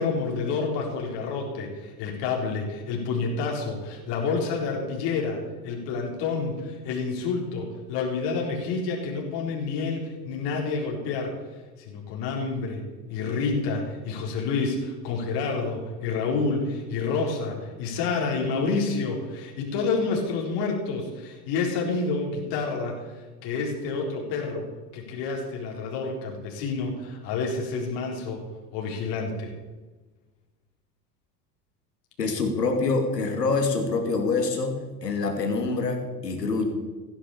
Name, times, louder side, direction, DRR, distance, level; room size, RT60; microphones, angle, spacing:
voice 1, 0.0-11.3 11.8-12.8 13.1-23.1 23.4-24.7 24.9-28.4 28.7-29.5, left 4 dB, 55° left, 0 dB, 4.1 m, -29 dB
voice 2, 32.2-36.6, left 3 dB, 80° left, 4 dB, 2.7 m, -26 dB
15.5 x 10.0 x 7.0 m, 1.2 s
figure-of-eight pair, 75°, 48 cm